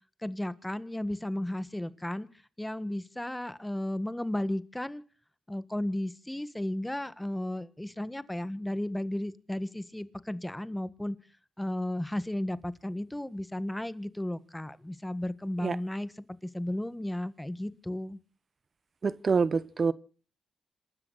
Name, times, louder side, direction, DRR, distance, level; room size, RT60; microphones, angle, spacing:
voice 1, 0.2-2.3 2.6-5.0 5.5-11.2 11.6-18.2, left 1 dB, 10° left, 1.6 m, -34 dB
voice 2, 19.0-19.9, right 5 dB, 50° right, 1.0 m, -26 dB
27.0 x 13.0 x 4.1 m
cardioid pair, 60°, 0 cm